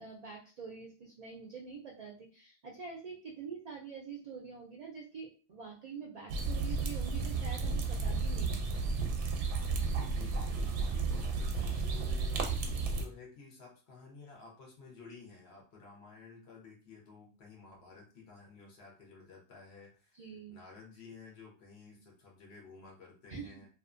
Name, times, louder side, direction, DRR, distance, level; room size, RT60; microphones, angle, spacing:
voice 1, 0.0-8.7 20.1-20.6 23.3-23.5, right 5 dB, 60° right, 0 dB, 0.4 m, -46 dB
sound 1, 6.3-13.1, right 4 dB, 90° right, 0.9 m, -33 dB
voice 2, 9.8-20.2 20.5-23.7, left 4 dB, 70° left, -1 dB, 1.1 m, -53 dB
2.5 x 2.4 x 2.5 m, 0.37 s
omnidirectional pair, 1.2 m